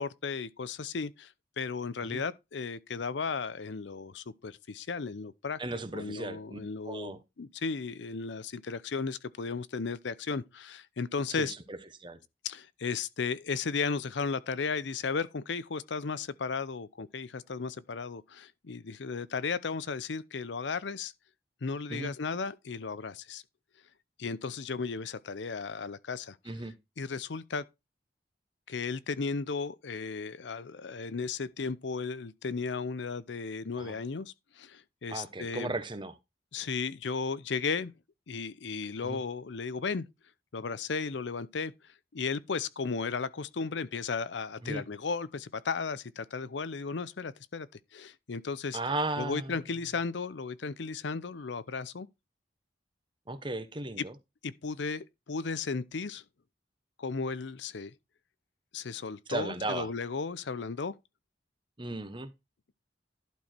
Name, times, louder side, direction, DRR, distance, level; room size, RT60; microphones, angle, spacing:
voice 1, 0.0-5.6 5.9-11.5 12.4-21.1 21.6-23.4 24.2-26.7 27.0-27.6 28.7-35.7 36.5-37.9 38.3-40.1 40.5-47.7 47.9-48.8 49.2-52.1 54.0-54.1 54.4-56.2 57.0-57.9 58.7-60.9, left 4 dB, 75° left, 0.6 m, -35 dB
voice 2, 5.6-6.6 6.8-7.2 11.4-12.2 21.9-22.1 26.5-26.7 33.8-34.0 35.1-36.2 39.0-39.2 44.6-44.8 48.7-49.6 53.3-54.1 59.3-59.9 61.8-62.3, right 2 dB, 25° right, 1.1 m, -36 dB
11.5 x 4.6 x 4.4 m
head